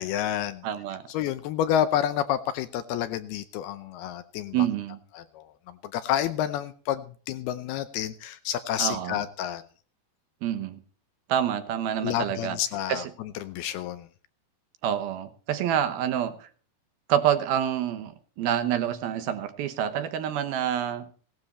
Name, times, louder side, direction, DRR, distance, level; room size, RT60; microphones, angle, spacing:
voice 1, 0.0-0.7 1.1-4.7 5.1-9.6 12.0-14.1, left 10 dB, 75° left, 12 dB, 2.5 m, -29 dB
voice 2, 0.6-1.0 4.5-5.0 8.8-9.2 10.4-10.8 11.3-12.6 12.9-13.1 14.8-16.5 17.1-18.1 18.4-21.1, right 10 dB, 70° right, 10 dB, 2.7 m, -27 dB
17.5 x 12.5 x 4.2 m, 0.42 s
omnidirectional pair, 4.9 m